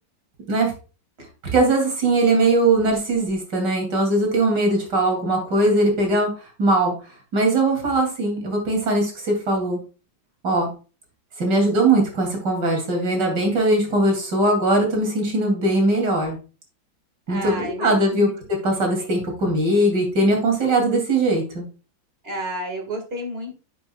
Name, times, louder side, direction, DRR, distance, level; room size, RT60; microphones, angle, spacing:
voice 1, 1.5-6.3 6.6-6.9 7.3-9.8 10.4-10.7 11.4-16.4 17.3-21.7, right 2 dB, 60° right, 1 dB, 3.5 m, -20 dB
voice 2, 17.3-18.3 19.0-19.1 22.2-23.6, right 1 dB, 30° right, 4 dB, 2.2 m, -31 dB
10.0 x 6.9 x 2.3 m, 0.35 s
omnidirectional pair, 2.1 m